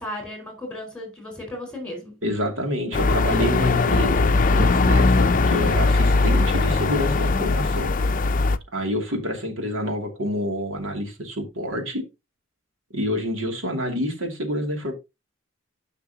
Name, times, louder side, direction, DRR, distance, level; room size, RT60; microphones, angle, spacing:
voice 1, 0.0-2.2, left 1 dB, 5° left, 4.5 m, -35 dB
voice 2, 2.2-7.9 8.7-12.1 12.9-14.9, equal, 80° right, 2.6 m, -28 dB
sound 1, 2.9-8.6, left 3 dB, 40° left, 0.5 m, -20 dB
13.5 x 5.9 x 2.9 m
head